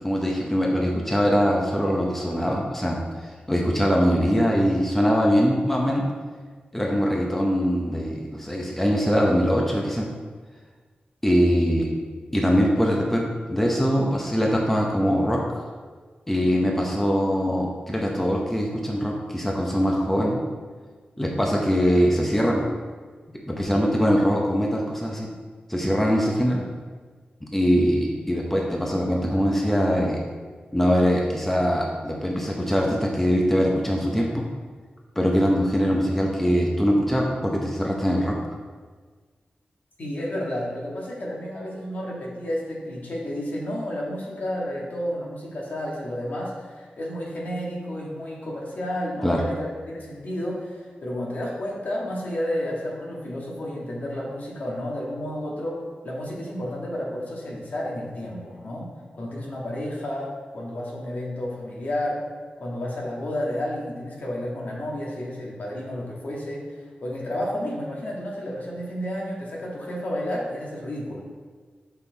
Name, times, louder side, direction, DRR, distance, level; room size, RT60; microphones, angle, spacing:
voice 1, 0.0-3.0 3.2-6.0 6.7-10.1 11.2-11.9 12.3-13.2 13.5-15.6 16.3-20.4 21.2-22.6 23.5-25.3 25.7-26.6 27.5-30.2 30.7-34.5 35.2-38.3 49.2-49.4, equal, 10° left, -1 dB, 0.8 m, -22 dB
voice 2, 40.0-58.9 59.1-62.2 62.6-71.2, left 1 dB, 60° left, -3 dB, 1.8 m, -31 dB
6.6 x 5.5 x 4.0 m, 1.5 s
wide cardioid pair, 110°, 3 cm